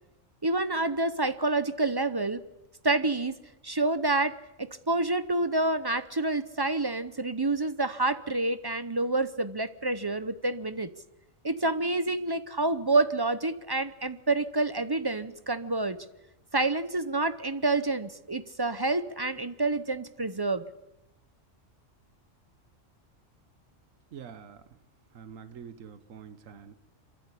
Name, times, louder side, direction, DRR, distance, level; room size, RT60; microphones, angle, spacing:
voice 1, 0.4-2.4 2.8-3.4 3.6-10.9 11.4-16.0 16.5-20.6, right 2 dB, 25° right, 13 dB, 0.5 m, -28 dB
voice 2, 24.1-24.6 25.1-26.7, right 7 dB, 80° right, 11 dB, 1.4 m, -46 dB
26.0 x 14.0 x 8.3 m, 0.97 s
omnidirectional pair, 1.3 m